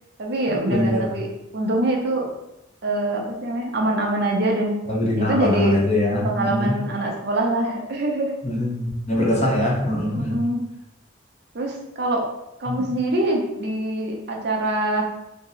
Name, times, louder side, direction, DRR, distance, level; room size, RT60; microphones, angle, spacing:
voice 1, 0.2-1.3 1.5-2.3 2.8-4.8 5.2-5.8 6.2-8.3 10.1-10.6 11.5-12.2 12.6-15.0, right 1 dB, 50° right, 0 dB, 0.5 m, -24 dB
voice 2, 0.7-1.1 4.9-6.7 8.4-10.4 12.7-12.9, left 1 dB, 30° left, -3 dB, 0.7 m, -22 dB
2.7 x 2.0 x 3.8 m, 0.90 s
head